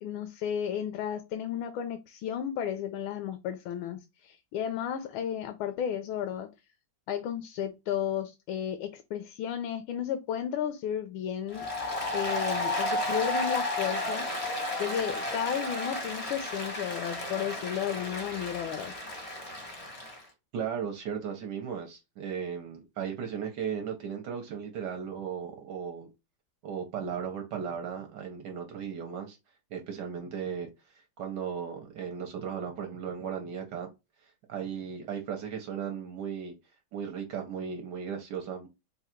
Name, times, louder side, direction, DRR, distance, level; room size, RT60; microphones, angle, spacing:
voice 1, 0.0-6.5 7.1-11.7 12.1-14.3 14.8-18.9, left 9 dB, 80° left, 1.4 m, -33 dB
Applause, 11.5-20.2, left 1 dB, 30° left, 0.6 m, -33 dB
voice 2, 20.5-26.1 26.6-29.4 29.7-30.7 31.2-33.9 34.5-36.5 36.9-38.7, right 7 dB, 65° right, 1.2 m, -36 dB
3.8 x 2.3 x 4.3 m
omnidirectional pair, 2.2 m